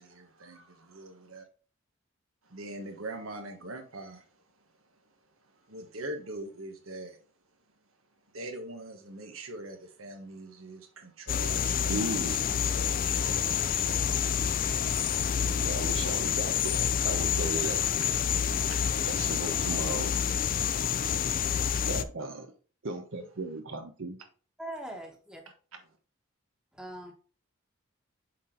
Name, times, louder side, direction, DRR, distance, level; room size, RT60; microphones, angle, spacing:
voice 1, 0.0-1.4 2.4-4.3 5.5-7.2 8.3-14.1, right 2 dB, 80° right, 1.4 m, -43 dB
sound 1, 11.3-22.0, left 8 dB, 40° left, 0.4 m, -28 dB
voice 2, 11.9-12.6 15.6-17.8 19.0-20.2 21.9-22.5 22.8-24.2, right 2 dB, 65° right, 0.8 m, -36 dB
voice 3, 24.6-25.4 26.7-27.1, right 1 dB, 5° right, 1.2 m, -41 dB
7.3 x 4.3 x 3.8 m
head